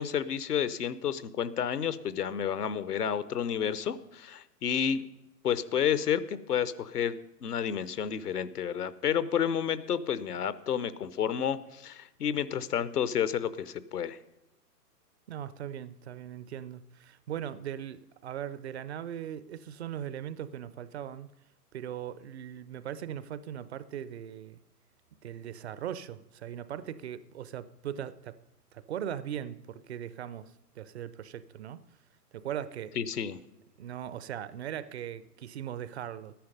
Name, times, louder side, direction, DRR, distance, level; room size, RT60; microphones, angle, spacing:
voice 1, 0.0-5.1 5.4-7.2 7.4-14.2 33.0-33.4, left 8 dB, 75° left, 15 dB, 0.8 m, -30 dB
voice 2, 15.3-21.3 21.7-24.6 25.2-28.4 28.7-31.8 32.3-33.0 33.8-36.3, right 10 dB, 45° right, 16 dB, 0.5 m, -39 dB
13.0 x 10.5 x 5.2 m, 0.96 s
figure-of-eight pair, 115°, 47 cm